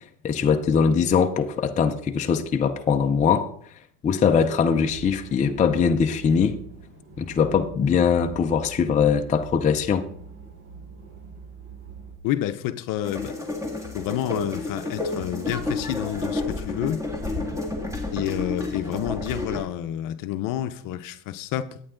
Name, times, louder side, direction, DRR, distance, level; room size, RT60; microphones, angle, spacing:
voice 1, 0.2-3.5 4.0-6.6 7.2-10.0, left 6 dB, 15° left, 0.5 m, -21 dB
sound 1, 4.9-12.1, right 6 dB, 55° right, 4.7 m, -43 dB
voice 2, 12.2-13.4 13.9-17.1 18.1-21.8, left 12 dB, 50° left, 0.7 m, -29 dB
sound 2, 13.0-19.6, left 2 dB, 5° right, 1.7 m, -30 dB
11.0 x 8.9 x 3.8 m
supercardioid pair, 130°, 44 cm